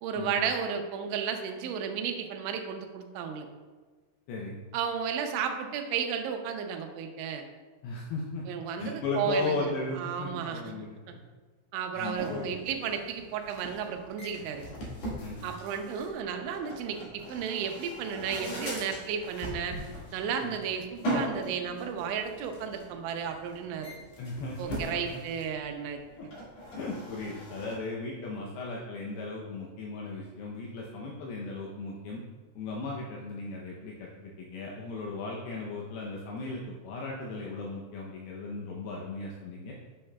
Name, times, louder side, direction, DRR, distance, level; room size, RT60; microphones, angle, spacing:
voice 1, 0.0-3.5 4.7-7.4 8.5-10.6 11.7-14.6 15.4-19.8 20.1-23.9 24.6-26.0, right 7 dB, 85° right, 5 dB, 3.1 m, -33 dB
voice 2, 4.3-4.6 7.8-8.4 8.8-11.2 11.9-12.6 15.2-15.4 20.4-20.6 24.2-25.2 26.2-26.3 26.7-32.2 32.6-39.7, left 3 dB, 80° left, -3 dB, 2.2 m, -36 dB
sound 1, 12.1-27.7, equal, 50° left, 2.1 m, -40 dB
8.6 x 7.5 x 2.2 m, 1.4 s
omnidirectional pair, 5.3 m